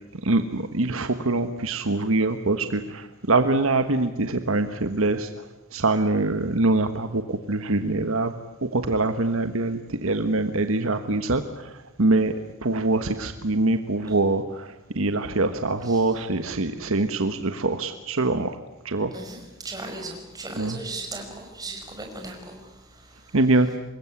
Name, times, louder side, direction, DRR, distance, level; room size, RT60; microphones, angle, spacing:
voice 1, 0.2-5.4 5.7-8.3 8.7-12.3 12.6-18.6 18.8-19.1 20.6-20.8 23.3-23.8, right 2 dB, 70° right, 8 dB, 1.3 m, -24 dB
voice 2, 15.8-16.2 19.1-23.4, right 2 dB, 15° right, 3 dB, 5.5 m, -38 dB
25.5 x 21.5 x 9.8 m, 1.0 s
head